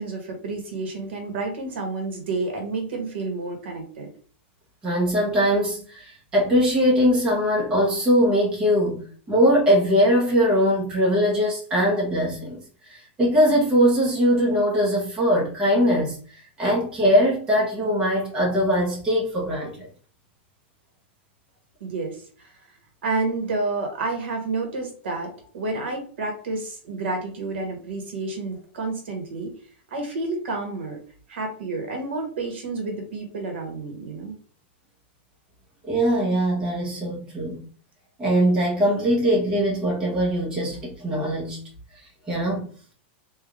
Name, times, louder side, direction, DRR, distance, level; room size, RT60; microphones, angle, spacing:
voice 1, 0.0-4.1 21.8-22.5 23.0-29.5 29.9-31.0 31.3-34.3, right 3 dB, 75° right, 3 dB, 1.5 m, -30 dB
voice 2, 4.8-12.6 12.9-19.8 35.8-37.6 38.2-41.7 42.3-42.6, equal, 15° right, -4 dB, 1.1 m, -21 dB
3.4 x 2.6 x 3.6 m, 0.43 s
supercardioid pair, 175°, 6 cm